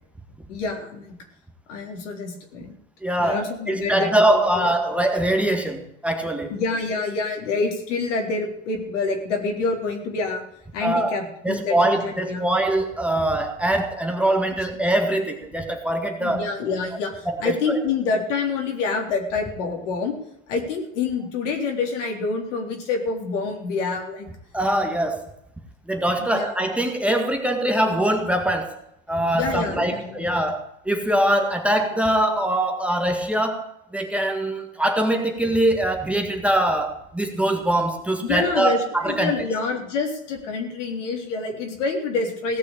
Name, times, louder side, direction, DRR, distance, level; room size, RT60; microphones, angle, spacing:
voice 1, 0.5-1.2 1.7-2.7 3.2-4.7 6.5-10.4 10.7-12.4 16.2-20.2 20.5-24.3 26.2-26.5 29.4-30.3 38.2-42.6, left 4 dB, 65° left, 2 dB, 3.9 m, -27 dB
voice 2, 3.0-6.5 10.8-11.2 11.4-16.5 17.3-17.8 24.5-25.2 25.9-28.8 29.1-33.7 33.9-39.4, right 1 dB, 5° right, 3 dB, 1.9 m, -23 dB
17.5 x 6.3 x 8.7 m, 0.78 s
hypercardioid pair, 90°, 38 cm